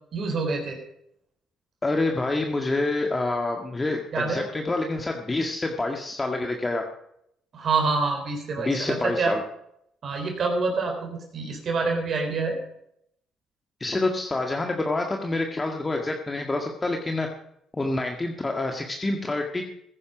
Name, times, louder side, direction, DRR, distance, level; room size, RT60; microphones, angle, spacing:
voice 1, 0.1-0.8 4.1-4.4 7.5-9.3 10.0-12.6, right 4 dB, 55° right, 3 dB, 3.8 m, -26 dB
voice 2, 1.8-6.8 8.6-9.4 13.8-17.3 17.7-19.6, left 2 dB, 25° left, 2 dB, 1.8 m, -27 dB
15.5 x 10.5 x 5.2 m, 0.73 s
supercardioid pair, 70°, 0 cm